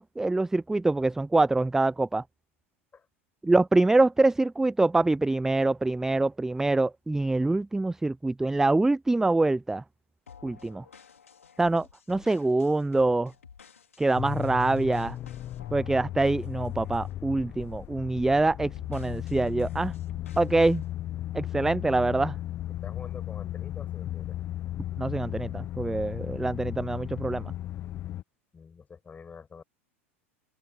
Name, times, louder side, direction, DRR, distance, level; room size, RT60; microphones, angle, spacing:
voice 1, 0.0-2.2 3.4-9.8 10.4-10.8 11.6-13.3 14.0-15.2 15.7-19.9 20.4-20.8 21.3-22.4 25.0-27.5, right 2 dB, 5° right, 0.4 m, -25 dB
sound 1, 10.3-17.2 17.6-17.9 18.3-20.8, left 6 dB, 85° left, 4.1 m, -53 dB
sound 2, 14.1-28.2, left 13 dB, 35° left, 0.8 m, -35 dB
voice 2, 22.8-24.4 28.5-29.6, left 5 dB, 20° left, 5.3 m, -46 dB
hypercardioid pair, 85°, 7 cm